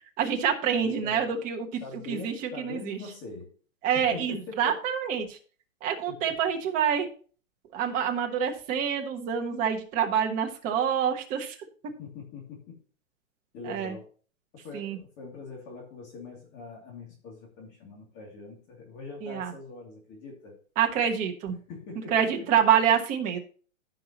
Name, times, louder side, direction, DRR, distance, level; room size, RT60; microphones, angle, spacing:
voice 1, 0.2-1.8 2.1-3.0 3.8-5.4 5.8-7.1 7.7-11.6 13.6-14.0 14.7-15.0 19.2-19.5 20.8-21.6 22.1-23.4, right 8 dB, 20° right, 3 dB, 1.2 m, -27 dB
voice 2, 0.8-1.3 1.8-3.5 3.9-4.8 6.1-6.3 12.0-12.8 13.5-14.1 14.6-20.6 21.7-22.7, left 4 dB, 25° left, 0 dB, 2.7 m, -42 dB
15.0 x 5.7 x 2.9 m, 0.40 s
hypercardioid pair, 155°, 41 cm